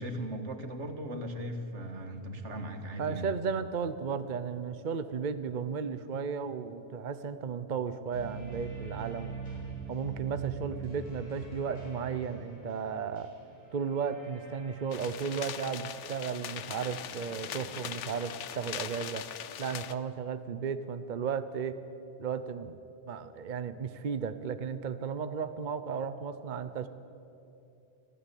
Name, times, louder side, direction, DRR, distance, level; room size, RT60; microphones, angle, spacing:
voice 1, 0.0-3.3, right 1 dB, 85° right, 7 dB, 2.0 m, -38 dB
voice 2, 3.0-9.3 9.9-13.3 13.7-19.3 19.6-21.8 22.2-22.8 23.1-26.9, right 6 dB, 45° right, 11 dB, 0.9 m, -34 dB
sound 1, 8.1-19.0, right 4 dB, 50° left, 7.3 m, -45 dB
sound 2, 14.9-19.9, left 9 dB, 90° left, 1.1 m, -41 dB
26.0 x 15.5 x 8.4 m, 2.8 s
omnidirectional pair, 1.2 m